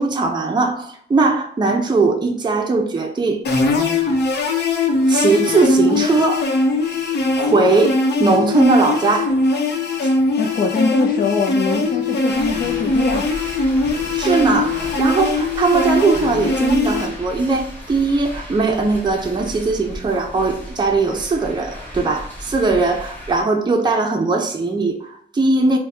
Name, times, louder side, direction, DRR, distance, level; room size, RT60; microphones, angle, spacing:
voice 1, 0.0-3.4 5.1-6.5 7.4-9.4 10.0-10.1 14.1-25.8, right 3 dB, 25° right, 0.6 m, -19 dB
sound 1, 3.4-17.1, left 3 dB, 75° left, 0.9 m, -20 dB
voice 2, 10.4-13.3, left 4 dB, 55° left, 0.6 m, -22 dB
sound 2, 12.2-23.4, equal, 10° left, 1.5 m, -35 dB
4.2 x 2.2 x 3.6 m
cardioid pair, 85°, 17 cm